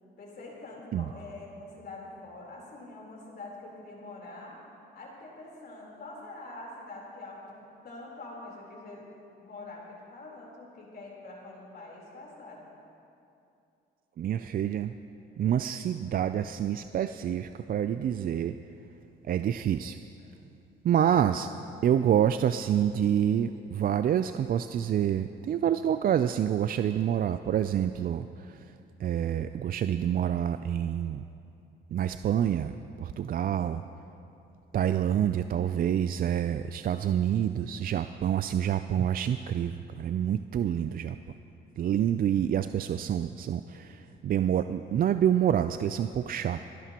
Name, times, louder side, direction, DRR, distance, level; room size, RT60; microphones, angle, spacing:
voice 1, 0.2-4.7 4.9-7.6 7.8-9.1 9.4-12.8, left 2 dB, 55° left, -3 dB, 3.8 m, -45 dB
voice 2, 14.2-14.9 15.4-18.6 19.3-20.0 20.8-21.5 21.8-28.7 29.0-31.2 31.9-32.7 33.0-33.8 34.7-41.2 41.8-46.6, right 9 dB, 50° right, 10 dB, 0.4 m, -27 dB
27.5 x 11.0 x 2.9 m, 2.7 s
cardioid pair, 90°, 20 cm